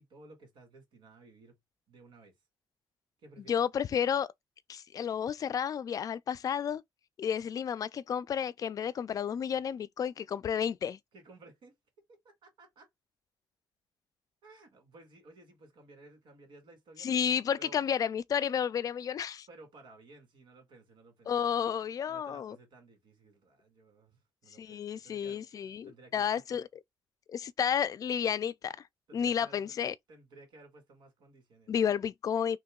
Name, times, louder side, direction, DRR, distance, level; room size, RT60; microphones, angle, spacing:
voice 1, 0.0-1.6 1.9-2.4 3.2-3.6 11.1-11.7 12.2-12.9 14.4-17.9 19.5-21.6 22.1-26.6 29.1-29.7 30.1-32.1, right 2 dB, 85° right, 2.0 m, -56 dB
voice 2, 3.5-4.3 4.7-6.8 7.2-11.0 17.0-19.5 21.3-22.6 24.6-26.7 27.3-28.7 29.1-29.9 31.7-32.6, left 8 dB, 45° left, 0.3 m, -31 dB
3.0 x 2.8 x 3.7 m
cardioid pair, 130°, 8 cm